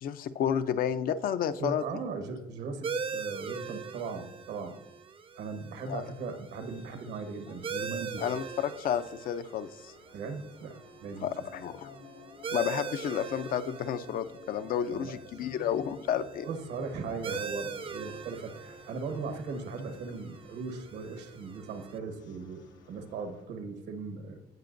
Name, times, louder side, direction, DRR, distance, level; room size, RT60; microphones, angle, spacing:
voice 1, 0.0-1.8 5.9-6.0 8.2-9.9 11.2-11.9 12.5-16.5, left 9 dB, 60° left, 11 dB, 0.5 m, -31 dB
voice 2, 1.6-4.8 5.4-8.2 10.1-11.3 14.9-15.2 16.4-24.4, right 4 dB, 80° right, 7 dB, 1.3 m, -38 dB
sound 1, 2.8-22.0, right 5 dB, 30° right, 0.5 m, -42 dB
sound 2, 6.2-23.5, left 5 dB, 90° left, 1.1 m, -55 dB
17.0 x 5.8 x 2.6 m, 0.93 s
cardioid pair, 110°, 17 cm